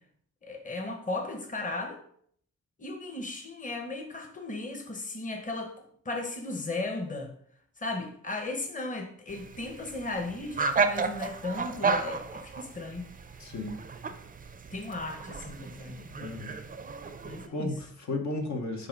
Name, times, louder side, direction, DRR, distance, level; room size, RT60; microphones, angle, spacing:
voice 1, 0.4-2.0 2.8-5.7 6.0-7.3 7.8-13.1 14.7-16.2 17.2-17.8, left 2 dB, 25° left, 3 dB, 1.0 m, -36 dB
sound 1, 9.3-17.5, right 4 dB, 30° right, 0.4 m, -33 dB
voice 2, 13.4-13.8 16.2-16.5 17.5-18.9, left 2 dB, 70° left, 3 dB, 1.0 m, -34 dB
6.8 x 2.7 x 5.1 m, 0.62 s
wide cardioid pair, 110°, 30 cm